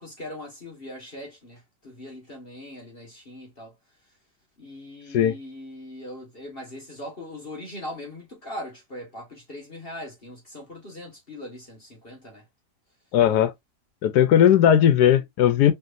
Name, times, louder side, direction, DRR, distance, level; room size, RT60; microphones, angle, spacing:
voice 1, 0.0-3.7 4.6-12.4, left 1 dB, 35° left, 1.6 m, -40 dB
voice 2, 13.1-13.5 14.0-15.7, left 10 dB, 80° left, 1.2 m, -17 dB
4.5 x 3.2 x 2.6 m
omnidirectional pair, 1.8 m